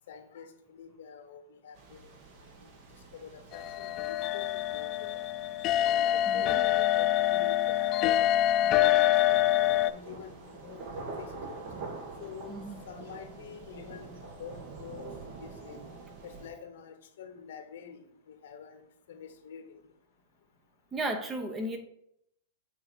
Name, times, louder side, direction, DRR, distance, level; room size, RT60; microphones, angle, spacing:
voice 1, 0.1-2.0 2.6-2.7 3.1-4.4 4.7-5.2 5.8-9.1 9.6-11.6 12.2-15.1 15.4-15.8 16.2-18.0 18.3-18.8 19.1-19.8, left 7 dB, 70° left, 6 dB, 1.2 m, -47 dB
sound 1, 1.7-16.5, right 3 dB, 50° right, 1.6 m, -46 dB
sound 2, 3.5-9.9, left 12 dB, 40° left, 0.3 m, -26 dB
voice 2, 6.3-6.6 12.5-12.8 20.9-21.8, right 1 dB, 20° right, 6 dB, 0.9 m, -34 dB
7.4 x 2.8 x 5.1 m, 0.75 s
hypercardioid pair, 125°, 0 cm